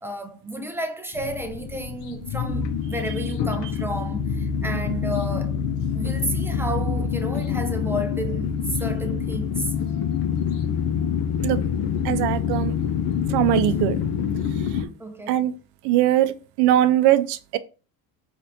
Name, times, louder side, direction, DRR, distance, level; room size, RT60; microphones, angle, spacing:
voice 1, 0.0-5.5 5.9-9.7 15.0-15.5, right 1 dB, 5° right, 0.3 m, -32 dB
sound 1, 1.1-14.9, left 7 dB, 60° left, 0.7 m, -26 dB
voice 2, 12.0-12.7 13.3-14.0 15.3-15.5 15.8-17.6, right 13 dB, 60° right, 0.5 m, -20 dB
4.2 x 2.5 x 2.7 m
supercardioid pair, 90°, 47 cm